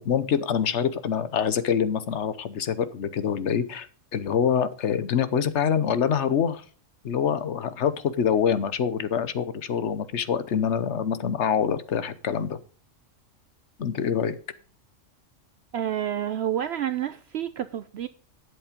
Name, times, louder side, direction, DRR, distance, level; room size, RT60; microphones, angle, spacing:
voice 1, 0.0-3.9 4.1-6.6 7.0-12.6 13.8-14.3, left 7 dB, 65° left, 1.2 m, -25 dB
voice 2, 15.7-18.1, right 10 dB, 65° right, 0.8 m, -29 dB
11.5 x 7.8 x 5.1 m
omnidirectional pair, 1.3 m